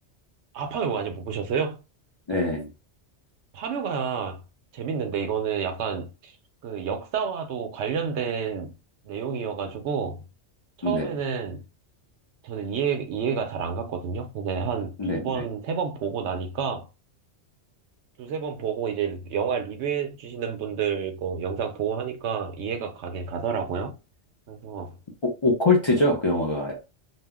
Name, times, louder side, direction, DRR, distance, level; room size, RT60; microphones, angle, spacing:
voice 1, 0.5-1.8 3.5-4.4 4.7-6.3 6.6-8.7 9.0-10.2 10.8-11.6 12.4-16.9 18.2-23.9 24.5-24.9, right 6 dB, 80° right, 0.9 m, -29 dB
voice 2, 2.3-2.7 10.8-11.1 15.0-15.4 25.2-26.7, left 2 dB, 40° left, 0.4 m, -23 dB
2.3 x 2.0 x 3.4 m
omnidirectional pair, 1.2 m